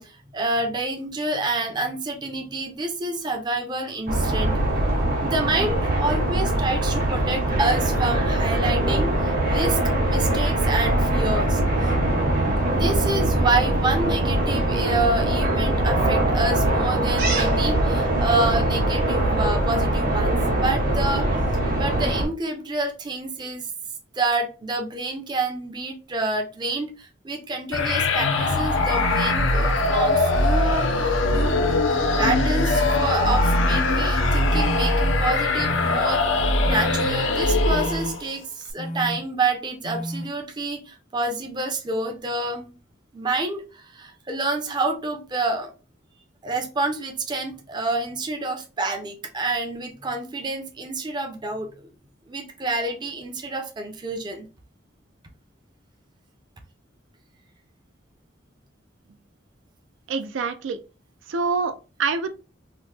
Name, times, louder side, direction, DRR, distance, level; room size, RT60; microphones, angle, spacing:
voice 1, 0.0-4.6 5.2-11.6 12.7-21.3 21.8-23.7 24.1-31.5 32.2-38.4 38.7-42.8 43.1-45.7 46.4-51.9 52.3-54.5, right 2 dB, 25° right, 0.5 m, -28 dB
sound 1, 4.1-22.3, right 1 dB, 50° right, 0.9 m, -22 dB
sound 2, 27.7-38.3, left 2 dB, 80° left, 0.6 m, -21 dB
sound 3, 34.5-34.9 35.6-36.0 36.6-37.0 37.7-38.1 38.8-39.2 39.8-40.2, equal, 35° left, 0.4 m, -32 dB
voice 2, 60.1-60.8 61.3-62.3, right 4 dB, 80° right, 0.4 m, -26 dB
3.0 x 2.1 x 3.1 m
head